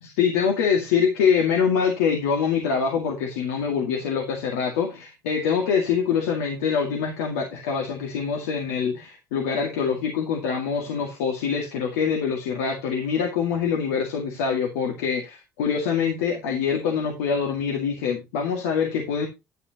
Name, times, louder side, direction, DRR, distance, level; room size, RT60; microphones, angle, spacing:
voice 1, 0.0-19.3, left 6 dB, 85° left, 1 dB, 2.0 m, -24 dB
10.5 x 8.9 x 2.9 m, 0.24 s
hypercardioid pair, 60°, 8 cm